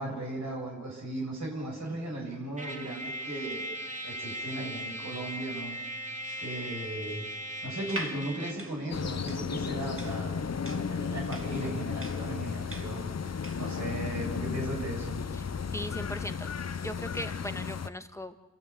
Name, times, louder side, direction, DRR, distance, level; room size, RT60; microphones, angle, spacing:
voice 1, 0.0-3.6 4.0-5.8 6.4-7.2 7.6-15.2, right 1 dB, 70° right, -2 dB, 7.2 m, -37 dB
Trumpet, 2.6-8.7, right 1 dB, 25° right, 2.8 m, -38 dB
sound 1, 7.8-13.7, right 1 dB, 45° right, 2.4 m, -43 dB
sound 2, 8.9-17.9, left 6 dB, 60° left, 0.7 m, -34 dB
voice 2, 15.7-16.5 16.8-18.3, equal, 10° left, 7 dB, 1.5 m, -38 dB
29.0 x 13.0 x 8.6 m, 1.1 s
wide cardioid pair, 60°, 30 cm